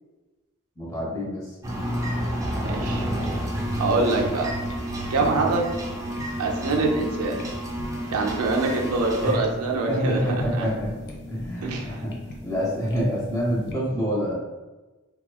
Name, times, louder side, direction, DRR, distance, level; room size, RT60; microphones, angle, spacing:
voice 1, 0.8-1.5 9.2-9.4 9.9-10.9 11.3-12.1 12.4-14.3, equal, 15° left, -8 dB, 1.1 m, -26 dB
sound 1, 1.6-9.4, right 1 dB, 15° right, 0.4 m, -30 dB
voice 2, 2.6-3.1 3.7-4.5 5.1-5.7 6.4-7.4 8.1-10.3 10.5-10.7 11.6-12.0, right 3 dB, 80° right, 0 dB, 0.4 m, -24 dB
sound 2, 2.7-13.7, left 2 dB, 50° left, 0.4 m, -38 dB
2.9 x 2.3 x 2.2 m, 1.2 s
head